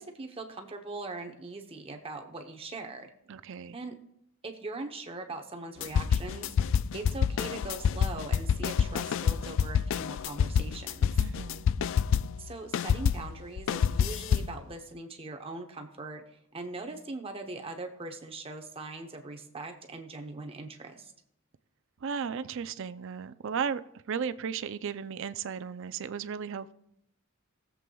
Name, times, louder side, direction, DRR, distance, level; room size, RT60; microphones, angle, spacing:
voice 1, 0.0-3.1 3.7-4.0 4.4-6.5 6.9-11.2 12.4-21.1, right 3 dB, 30° right, 0.8 m, -41 dB
voice 2, 3.3-3.8 11.2-11.7 22.0-23.8 24.1-26.7, right 6 dB, 65° right, 0.5 m, -35 dB
sound 1, 5.8-12.4 12.7-14.6, left 7 dB, 65° left, 0.3 m, -27 dB
20.0 x 7.6 x 2.3 m
head